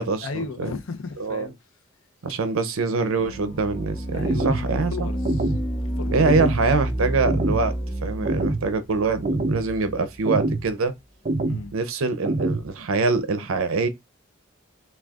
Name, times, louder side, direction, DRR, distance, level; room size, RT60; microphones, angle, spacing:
voice 1, 0.2-1.5 4.1-5.5 6.0-6.4 11.5-11.7, left 4 dB, 75° left, 0.6 m, -35 dB
voice 2, 1.2-1.5 2.2-5.1 6.1-7.7 8.0-10.9 11.7-13.9, right 4 dB, 80° right, 0.6 m, -24 dB
sound 1, 3.2-10.3, right 1 dB, 20° left, 0.9 m, -30 dB
sound 2, 4.2-4.7 5.2-5.7 6.2-6.7 7.2-7.6 8.2-8.7 9.2-9.6 10.3-10.7 11.2-11.7 12.2-12.7, right 2 dB, 35° right, 0.5 m, -25 dB
6.1 x 2.3 x 2.4 m
head